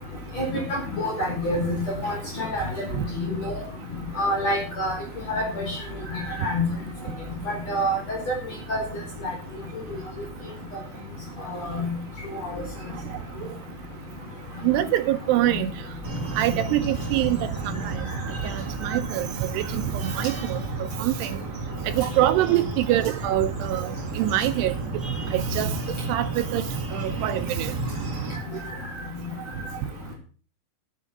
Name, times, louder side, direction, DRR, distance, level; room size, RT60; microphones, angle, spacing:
voice 1, 0.4-2.8 3.4-3.6 4.2-5.0 5.3-5.7 6.1-6.7 7.5-8.4 8.7-8.8 11.6-11.9, equal, 35° left, 5.3 m, -27 dB
voice 2, 14.6-15.7 16.4-17.4 17.8-17.9 18.4-20.6 21.0-21.4 22.0-23.9 24.2-24.7 25.3-25.7 26.1-26.6 26.9-27.7, right 14 dB, 80° right, 2.5 m, -24 dB
sound 1, 16.0-28.4, right 3 dB, 45° right, 1.3 m, -32 dB
9.9 x 9.2 x 7.2 m
omnidirectional pair, 5.4 m